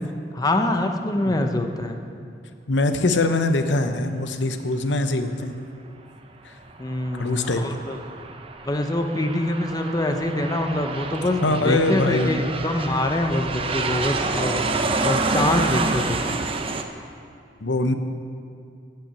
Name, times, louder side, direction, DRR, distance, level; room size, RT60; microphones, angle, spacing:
voice 1, 0.3-2.0 6.8-8.0 8.6-16.2, left 1 dB, 20° left, 5 dB, 0.8 m, -25 dB
voice 2, 2.7-5.5 6.4-6.5 7.1-7.6 11.4-12.3 17.6-17.9, left 2 dB, 85° left, 8 dB, 0.8 m, -22 dB
Aircraft, 6.6-16.8, right 3 dB, 30° right, 0.7 m, -28 dB
12.5 x 5.8 x 9.0 m, 2.4 s
head